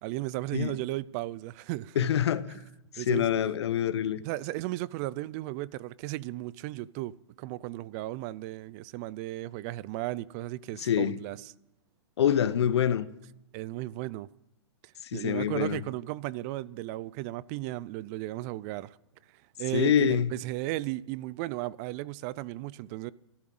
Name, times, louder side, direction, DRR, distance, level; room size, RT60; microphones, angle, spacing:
voice 1, 0.0-2.2 3.0-3.3 4.2-11.5 13.5-14.3 15.1-19.0 19.6-23.1, right 17 dB, 35° right, 0.5 m, -35 dB
voice 2, 2.0-2.5 3.0-4.2 10.8-11.2 12.2-13.1 15.0-15.8 19.7-20.3, left 9 dB, 70° left, 1.0 m, -26 dB
14.5 x 11.5 x 7.8 m
hypercardioid pair, 125°, 15 cm